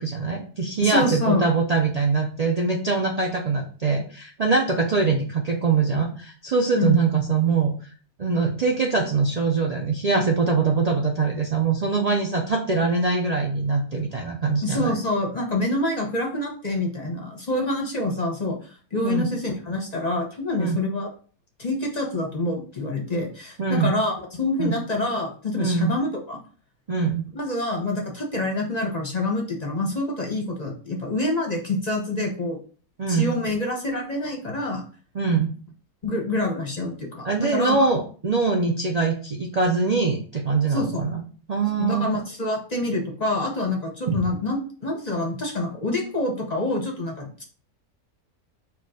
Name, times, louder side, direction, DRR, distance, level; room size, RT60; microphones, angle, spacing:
voice 1, 0.0-7.7 8.2-15.0 19.0-19.3 20.6-20.8 23.6-23.9 24.6-24.7 25.6-25.9 26.9-27.2 33.0-33.3 35.1-35.5 37.2-41.2 41.5-42.2 44.1-44.2, right 4 dB, 85° right, 0 dB, 0.3 m, -23 dB
voice 2, 0.8-1.4 6.8-7.0 14.6-18.6 18.9-21.1 21.6-26.4 27.3-32.6 33.1-34.8 36.0-37.9 40.7-41.0 41.8-47.4, left 2 dB, 35° left, 1 dB, 0.7 m, -26 dB
4.6 x 2.4 x 4.7 m, 0.40 s
omnidirectional pair, 1.5 m